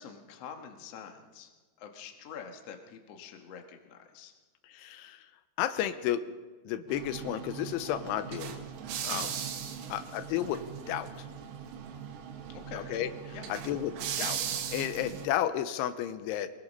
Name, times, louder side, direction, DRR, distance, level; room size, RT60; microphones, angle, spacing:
voice 1, 0.0-1.5 1.8-4.4 9.8-10.0 12.5-12.9 13.3-13.5, left 7 dB, 60° left, 3 dB, 1.7 m, -46 dB
voice 2, 4.7-5.3 5.6-6.3 6.7-8.6 9.0-9.3 9.9-11.3 12.9-13.1 13.5-14.4 14.7-16.5, left 11 dB, 85° left, 11 dB, 3.2 m, -32 dB
sound 1, 6.9-15.3, right 8 dB, 90° right, 4.2 m, -38 dB
23.0 x 20.5 x 5.5 m, 1.3 s
omnidirectional pair, 5.5 m